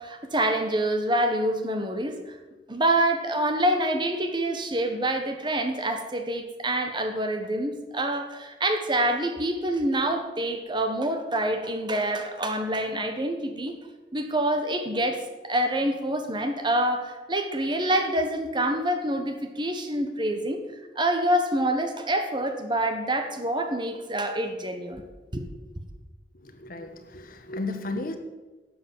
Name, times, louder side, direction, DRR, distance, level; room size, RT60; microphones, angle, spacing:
voice 1, 0.0-2.3 2.7-13.7 14.1-20.6 20.9-25.0 25.3-25.4, right 1 dB, 25° right, 6 dB, 1.3 m, -26 dB
voice 2, 26.3-28.2, left 2 dB, 55° left, 7 dB, 1.3 m, -34 dB
11.5 x 7.9 x 7.3 m, 1.2 s
head